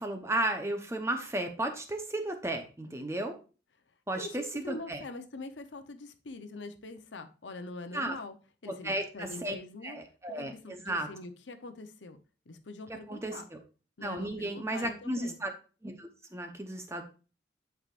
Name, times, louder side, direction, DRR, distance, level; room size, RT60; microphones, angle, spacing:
voice 1, 0.0-3.4 4.1-5.0 7.9-8.2 8.7-9.5 9.8-11.1 13.1-13.6 14.0-15.5 15.8-17.0, right 1 dB, 15° right, 5 dB, 0.9 m, -34 dB
voice 2, 4.1-8.3 8.6-10.0 10.4-12.2 12.5-13.5 14.0-15.4, left 2 dB, 80° left, 8 dB, 0.8 m, -44 dB
11.0 x 4.8 x 2.5 m, 0.35 s
head